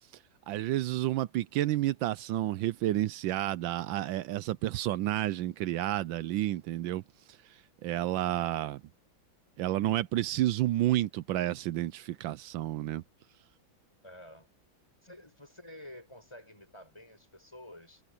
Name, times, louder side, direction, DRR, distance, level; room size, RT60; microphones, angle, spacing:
voice 1, 0.5-7.0 7.8-8.8 9.6-13.0, right 14 dB, 80° right, 1.3 m, -30 dB
voice 2, 14.0-14.5 15.0-18.0, left 1 dB, 15° left, 7.0 m, -50 dB
omnidirectional pair, 2.1 m